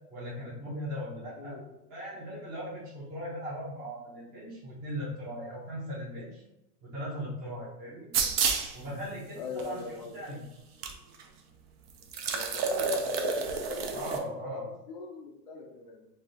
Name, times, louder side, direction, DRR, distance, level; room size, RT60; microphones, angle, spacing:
voice 1, 0.1-1.5 1.9-6.4 6.8-8.1 8.7-10.4 13.9-14.6, equal, 15° right, -10 dB, 0.9 m, -38 dB
voice 2, 1.4-1.8 9.3-10.3 12.3-16.1, left 5 dB, 30° left, 1 dB, 0.4 m, -41 dB
sound 1, 8.1-8.7 9.6-9.7 10.8-10.9 11.2-11.3 12.0-14.2, right 5 dB, 40° right, 0.5 m, -29 dB
4.8 x 2.7 x 2.7 m, 0.89 s
supercardioid pair, 155°, 47 cm